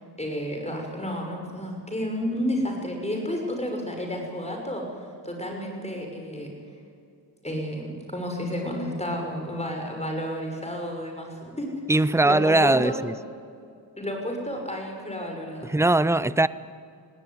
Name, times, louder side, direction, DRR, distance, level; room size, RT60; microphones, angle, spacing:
voice 1, 0.2-4.8 5.2-6.5 7.4-13.0 14.0-15.7, equal, 15° left, 2 dB, 6.1 m, -31 dB
voice 2, 11.9-13.1 15.6-16.5, right 2 dB, 5° right, 17 dB, 0.6 m, -20 dB
20.0 x 17.5 x 9.6 m, 2.4 s
cardioid pair, 90°, 45 cm